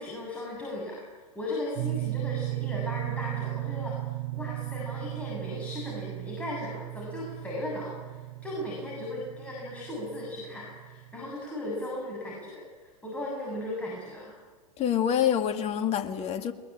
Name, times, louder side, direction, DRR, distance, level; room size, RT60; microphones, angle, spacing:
voice 1, 0.0-14.4, left 1 dB, 5° left, 7.6 m, -37 dB
sound 1, 1.8-11.3, right 20 dB, 40° right, 1.7 m, -36 dB
voice 2, 14.8-16.5, left 9 dB, 30° left, 2.1 m, -26 dB
22.0 x 21.5 x 8.8 m
hypercardioid pair, 105°, 20 cm